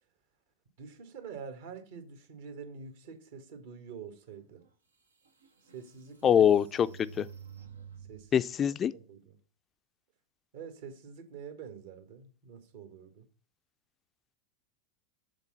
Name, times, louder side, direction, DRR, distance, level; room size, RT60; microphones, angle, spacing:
voice 1, 0.8-4.6 5.7-6.5 6.8-7.2 8.1-8.5 8.9-9.4 10.5-13.3, right 6 dB, 65° right, 1.6 m, -46 dB
sound 1, 4.6-4.7 5.2-8.4, right 6 dB, 85° right, 1.1 m, -50 dB
voice 2, 6.2-6.9 7.2-7.3 8.3-8.9, left 9 dB, 30° left, 0.4 m, -23 dB
7.1 x 3.8 x 5.5 m
figure-of-eight pair, 90°, 0 cm